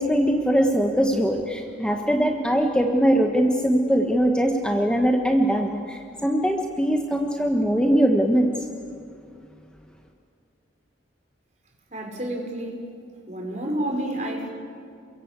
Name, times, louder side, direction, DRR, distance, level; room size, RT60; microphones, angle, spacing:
voice 1, 0.0-8.5, equal, 5° left, 2 dB, 1.3 m, -21 dB
voice 2, 11.9-12.8 13.3-14.5, right 1 dB, 40° right, 1 dB, 5.2 m, -29 dB
28.5 x 23.0 x 8.2 m, 2.3 s
head